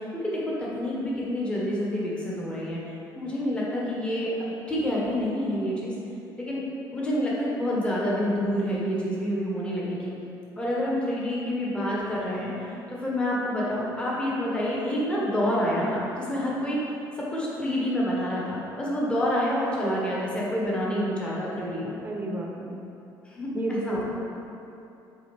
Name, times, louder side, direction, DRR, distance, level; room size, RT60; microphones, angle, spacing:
voice 1, 0.0-2.8 3.1-5.9 6.4-6.6 6.9-10.1 10.6-12.5 12.9-16.8 17.2-22.0 23.3-24.0, equal, 10° left, -6 dB, 1.2 m, -28 dB
voice 2, 22.0-22.8 23.5-24.0, right 2 dB, 20° right, -1 dB, 0.9 m, -31 dB
8.3 x 3.7 x 3.5 m, 2.8 s
cardioid pair, 140°, 9 cm